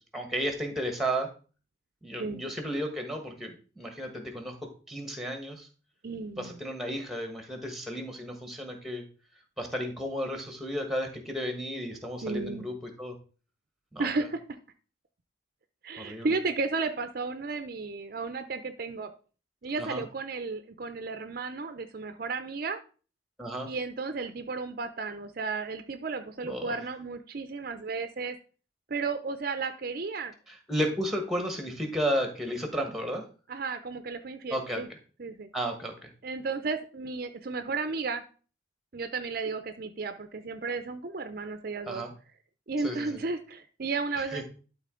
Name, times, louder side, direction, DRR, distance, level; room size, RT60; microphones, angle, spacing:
voice 1, 0.1-1.3 2.0-4.6 4.9-5.7 6.4-9.0 9.6-13.1 13.9-14.1 16.0-16.4 19.8-20.0 23.4-23.7 26.4-26.8 30.5-33.2 34.5-34.8 35.5-36.1 41.9-42.1 42.8-43.2 44.3-44.4, equal, ahead, 4 dB, 1.3 m, -33 dB
voice 2, 6.0-6.6 12.2-12.6 14.0-14.4 15.8-19.1 19.6-22.8 23.6-28.4 28.9-30.3 33.5-34.9 35.2-35.5 36.2-38.2 38.9-42.0 42.7-44.4, right 4 dB, 50° right, 9 dB, 0.5 m, -33 dB
12.0 x 3.9 x 3.7 m, 0.37 s
head